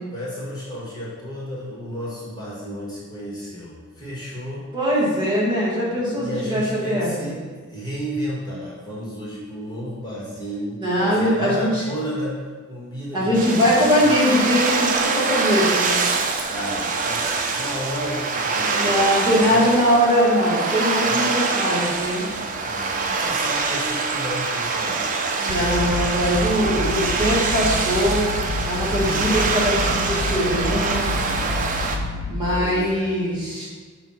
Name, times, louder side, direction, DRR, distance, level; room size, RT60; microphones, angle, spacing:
voice 1, 0.1-4.7 6.1-7.4 7.7-12.4 12.7-14.1 16.5-19.6 21.1-21.2 22.6-25.2 32.5-33.2, equal, 20° left, -7 dB, 1.5 m, -32 dB
voice 2, 4.7-7.4 10.8-11.8 13.1-16.0 18.7-22.3 25.4-28.3 28.6-31.1 32.3-33.7, equal, 20° right, -8 dB, 1.7 m, -21 dB
sound 1, 13.3-32.0, right 4 dB, 40° right, 0.5 m, -24 dB
sound 2, 25.5-32.4, left 2 dB, 90° left, 0.6 m, -29 dB
7.0 x 2.6 x 5.7 m, 1.5 s
head